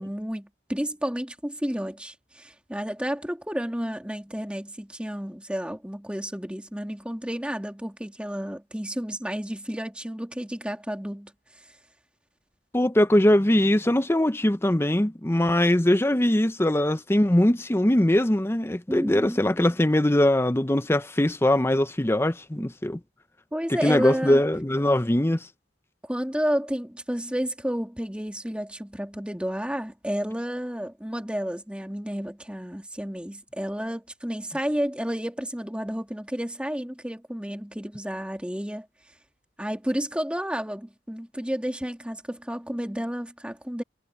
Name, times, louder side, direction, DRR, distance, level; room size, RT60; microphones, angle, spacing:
voice 1, 0.0-11.3 18.9-19.5 22.6-22.7 23.5-24.4 26.0-38.9 39.6-43.8, equal, 5° right, 2.5 m, -31 dB
voice 2, 12.7-23.0 23.8-25.4, left 1 dB, 15° left, 0.7 m, -21 dB
head